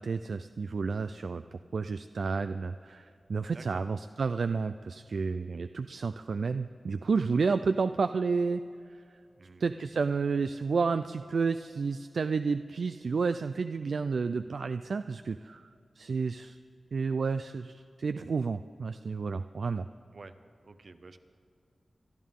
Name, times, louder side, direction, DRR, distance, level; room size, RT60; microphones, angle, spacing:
voice 1, 0.0-1.4 1.7-8.6 9.6-15.7 16.0-16.6 16.9-19.9, right 4 dB, 75° right, 10 dB, 0.3 m, -31 dB
voice 2, 3.5-3.9 9.3-9.8 20.1-20.3 20.6-21.2, right 3 dB, 60° right, 9 dB, 0.8 m, -49 dB
25.0 x 12.5 x 3.7 m, 2.5 s
wide cardioid pair, 100°, 0 cm